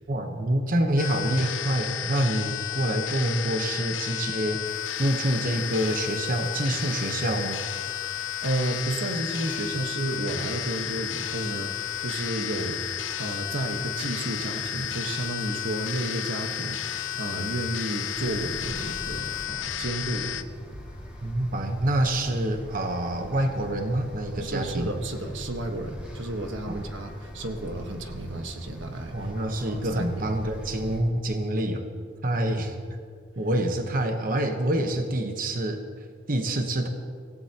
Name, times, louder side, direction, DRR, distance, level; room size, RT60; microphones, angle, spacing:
voice 1, 0.1-7.7 21.2-24.9 26.7-26.8 29.1-31.8 32.2-32.8 33.4-35.8 36.3-36.9, right 1 dB, 45° right, 4 dB, 1.1 m, -27 dB
sound 1, 1.0-20.4, left 10 dB, 90° left, 0.7 m, -32 dB
sound 2, 4.6-19.5, left 3 dB, 30° left, 2.4 m, -48 dB
voice 2, 8.1-12.9 13.2-20.5 24.4-29.3 29.6-30.3 32.4-32.5, right 1 dB, 85° right, 4 dB, 1.4 m, -32 dB
sound 3, 18.1-31.0, equal, 5° right, 2.3 m, -43 dB
25.5 x 16.0 x 3.0 m, 2.1 s
head